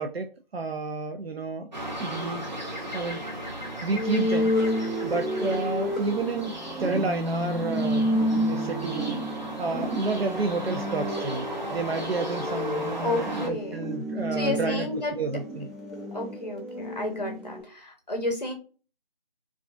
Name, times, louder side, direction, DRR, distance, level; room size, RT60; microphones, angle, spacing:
voice 1, 0.0-1.7 2.0-2.4 2.9-3.2 3.8-4.5 5.0-9.2 9.6-14.9 15.2-15.7, right 3 dB, 85° right, 5 dB, 0.5 m, -30 dB
sound 1, 1.7-13.5, right 1 dB, 50° right, 0.7 m, -36 dB
sound 2, 3.9-17.6, equal, ahead, 0.4 m, -30 dB
voice 2, 9.7-10.0 13.0-13.8 14.3-15.1 16.1-18.5, left 2 dB, 45° left, 3 dB, 0.6 m, -31 dB
2.4 x 2.3 x 2.4 m, 0.35 s
figure-of-eight pair, 175°, 30 cm